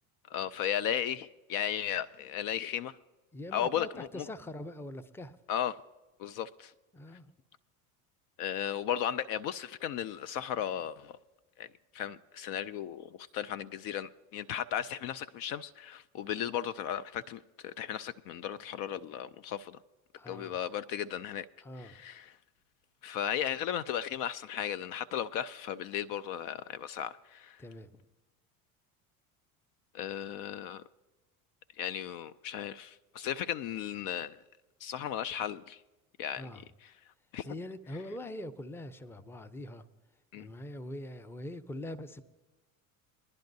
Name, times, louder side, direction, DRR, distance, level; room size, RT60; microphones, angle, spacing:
voice 1, 0.3-3.0 3.5-4.3 5.5-5.8 6.2-6.7 8.4-11.2 11.6-11.7 11.9-19.8 20.3-21.5 21.8-22.4 23.0-27.6 29.9-30.8 31.8-34.4 34.8-35.8 36.2-36.5 37.3-37.5 40.3-40.5, left 10 dB, 50° left, 0.4 m, -35 dB
voice 2, 3.3-5.4 6.9-7.3 20.2-20.6 21.6-22.0 27.6-28.0 36.4-36.6 37.4-39.9 40.3-42.2, left 1 dB, 5° left, 0.6 m, -43 dB
22.5 x 10.5 x 2.7 m
hypercardioid pair, 75°, 43 cm